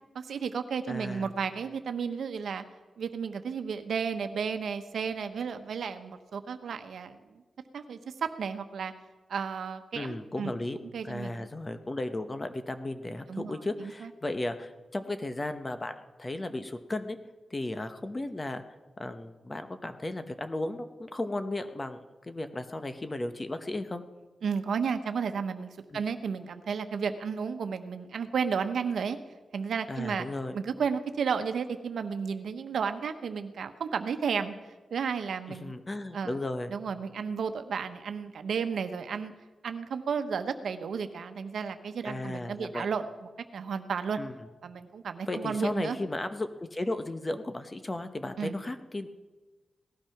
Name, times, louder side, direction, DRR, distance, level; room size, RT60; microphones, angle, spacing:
voice 1, 0.1-2.6 3.0-7.1 7.7-8.9 9.3-10.5 10.9-11.5 13.3-14.1 24.4-29.2 29.5-30.3 30.5-34.5 34.9-35.7 36.1-36.4 36.7-39.3 39.6-43.0 43.5-44.2 44.6-46.0 48.4-48.5, right 6 dB, 85° right, 9 dB, 1.0 m, -33 dB
voice 2, 0.9-1.3 9.9-10.8 11.0-15.9 16.2-17.2 17.5-18.6 19.0-24.0 25.9-26.0 29.9-30.6 35.5-36.7 42.0-42.9 44.2-44.4 45.3-49.1, left 2 dB, 25° left, 9 dB, 1.0 m, -35 dB
18.0 x 12.5 x 5.9 m, 1.2 s
wide cardioid pair, 125°, 0 cm